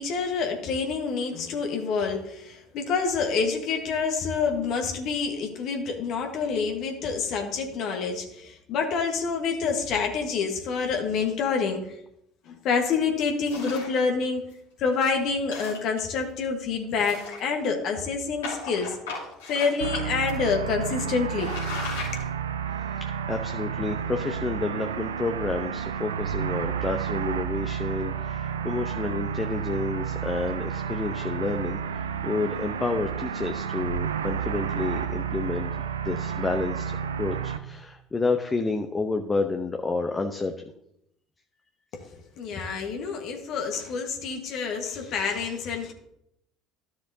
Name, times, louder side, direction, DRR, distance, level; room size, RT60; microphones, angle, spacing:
voice 1, 0.0-12.0 12.5-14.5 14.8-18.9 19.5-21.5 41.9-42.0 42.4-45.9, left 5 dB, 55° left, 3 dB, 1.4 m, -27 dB
sound 1, 13.4-14.0 14.5-14.6 14.9-15.1 15.4-16.2 16.9-17.7 18.4-20.0 20.3-20.4 20.9-21.0 21.3-22.2, left 4 dB, 80° left, 3.0 m, -36 dB
sound 2, 19.8-37.6, right 8 dB, 80° right, 0.5 m, -31 dB
voice 2, 23.0-35.8 36.0-40.6, left 3 dB, 25° left, 5 dB, 0.8 m, -30 dB
13.5 x 6.7 x 2.8 m, 0.78 s
figure-of-eight pair, 60°, 0 cm